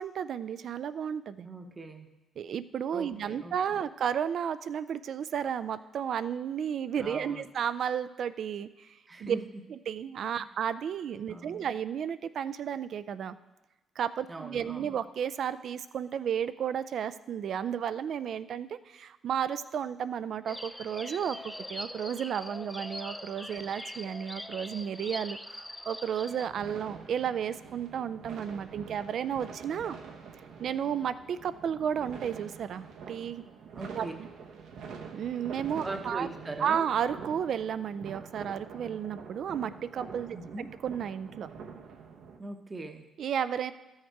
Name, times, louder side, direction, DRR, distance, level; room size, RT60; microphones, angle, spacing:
voice 1, 0.0-1.5 2.4-8.9 9.2-9.4 9.7-13.4 14.0-30.0 30.6-33.4 33.9-34.3 35.1-36.3 36.6-40.4 40.8-41.5 43.2-43.7, right 8 dB, 65° right, 14 dB, 0.4 m, -33 dB
voice 2, 1.4-2.1 2.9-3.8 7.0-7.5 9.1-9.6 11.3-11.7 14.3-15.0 33.7-34.1 35.8-36.9 40.3-40.7 42.4-43.1, right 2 dB, 25° right, 5 dB, 0.9 m, -41 dB
sound 1, 20.5-26.5, left 1 dB, 5° left, 0.4 m, -42 dB
sound 2, 26.3-42.4, right 6 dB, 80° right, 1.0 m, -46 dB
13.0 x 6.4 x 4.6 m, 1.1 s
cardioid pair, 90°, 0 cm